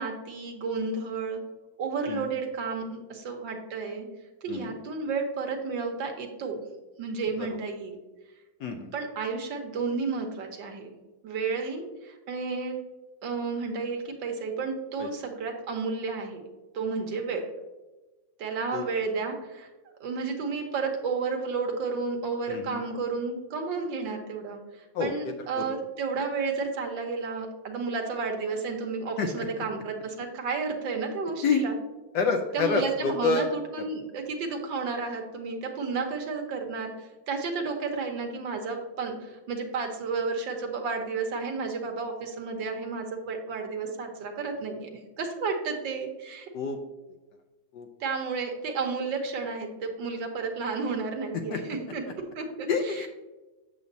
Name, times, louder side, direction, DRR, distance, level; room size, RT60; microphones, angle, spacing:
voice 1, 0.0-1.4 1.8-4.1 4.4-6.6 7.0-8.0 8.9-11.0 11.2-12.8 13.2-16.4 16.7-17.4 18.4-19.7 20.0-31.8 32.5-44.9 45.2-46.5 48.0-53.1, right 4 dB, 70° right, 2 dB, 1.6 m, -32 dB
voice 2, 22.5-22.8 24.9-25.1 25.6-25.7 29.2-29.5 31.4-31.6 32.1-33.5 46.5-46.8 47.7-47.9 51.5-51.6 52.7-53.1, left 5 dB, 70° left, 4 dB, 1.1 m, -27 dB
8.1 x 6.9 x 2.7 m, 1.1 s
omnidirectional pair, 2.2 m